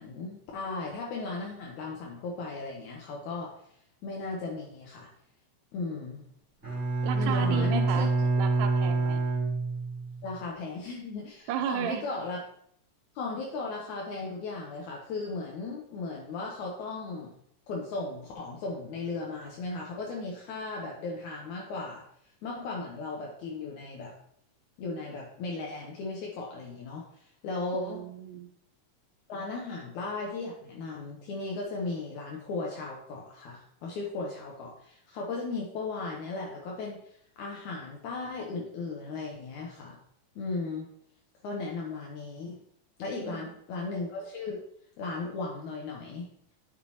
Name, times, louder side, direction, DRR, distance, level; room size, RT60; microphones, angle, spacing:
voice 1, 0.0-3.5 4.0-5.1 5.7-6.2 7.1-8.1 10.2-12.4 13.2-17.4 17.7-22.0 22.4-24.1 24.8-28.0 29.3-37.1 37.4-40.0 40.4-40.9 41.4-42.6 43.0-44.6 45.0-46.3, left 3 dB, 75° left, -2 dB, 2.3 m, -36 dB
Bowed string instrument, 6.6-10.2, right 3 dB, 5° right, 3.4 m, -27 dB
voice 2, 7.0-8.1 8.4-9.2 11.5-12.1 27.7-28.5 43.2-43.5, right 9 dB, 90° right, 8 dB, 2.2 m, -34 dB
9.5 x 6.7 x 2.9 m, 0.68 s
omnidirectional pair, 3.7 m